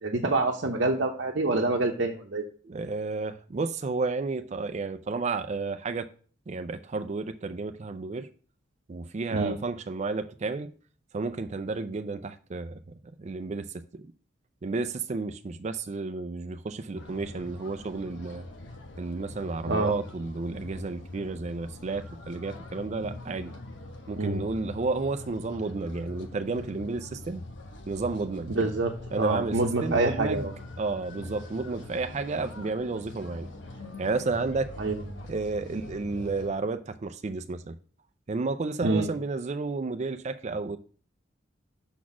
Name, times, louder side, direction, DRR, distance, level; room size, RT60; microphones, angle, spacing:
voice 1, 0.0-2.4 9.3-9.6 19.7-19.9 24.2-24.4 28.5-30.5 34.8-35.0 38.8-39.1, right 2 dB, 70° right, 0.8 m, -26 dB
voice 2, 2.6-6.1 6.5-8.3 8.9-10.7 11.1-12.8 13.2-14.1 14.6-18.4 19.0-23.5 24.1-27.4 27.9-28.5 29.1-30.5 30.8-33.5 34.0-34.7 35.3-37.7 38.3-40.8, right 3 dB, 35° right, 0.4 m, -32 dB
sound 1, 16.9-36.5, left 2 dB, 70° left, 1.1 m, -43 dB
6.0 x 4.2 x 5.9 m
head